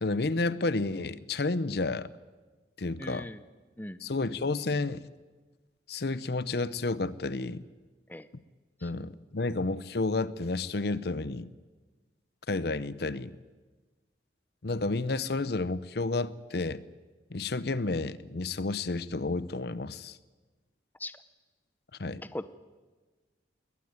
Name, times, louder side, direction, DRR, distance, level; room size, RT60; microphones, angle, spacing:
voice 1, 0.0-2.1 2.8-3.3 4.0-5.0 5.9-7.6 8.8-11.5 12.5-13.4 14.6-16.8 17.3-20.2 22.0-22.2, left 3 dB, 60° left, 17 dB, 0.7 m, -31 dB
voice 2, 3.0-3.4 3.8-4.1 8.1-8.3 8.8-8.9 21.0-21.2 22.2-22.6, left 1 dB, 10° left, 13 dB, 0.7 m, -40 dB
20.5 x 19.0 x 9.6 m, 1.3 s
head